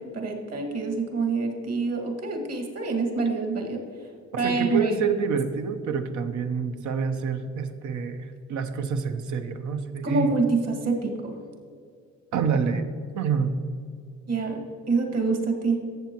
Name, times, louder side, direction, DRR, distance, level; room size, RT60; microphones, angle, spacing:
voice 1, 0.0-3.8 4.4-4.9 10.0-11.4 14.3-14.6 14.9-15.8, right 3 dB, 55° right, 2 dB, 1.9 m, -26 dB
voice 2, 4.4-10.3 12.3-12.9 13.1-13.6, right 6 dB, 80° right, 7 dB, 0.9 m, -27 dB
14.0 x 7.3 x 3.0 m, 2.3 s
cardioid pair, 95°, 29 cm